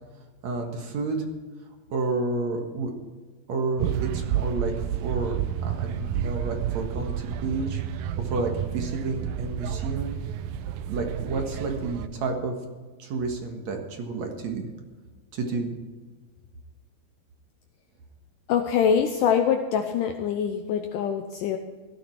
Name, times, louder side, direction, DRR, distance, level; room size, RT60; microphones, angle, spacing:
voice 1, 0.4-1.3 1.9-2.9 3.5-10.2 10.9-12.6 13.0-14.7 15.3-15.7, right 3 dB, 55° right, 3 dB, 2.2 m, -30 dB
sound 1, 3.8-12.1, right 9 dB, 80° right, 2.1 m, -30 dB
voice 2, 18.5-21.6, left 7 dB, 80° left, 5 dB, 1.9 m, -24 dB
16.5 x 13.0 x 4.6 m, 1.4 s
omnidirectional pair, 4.7 m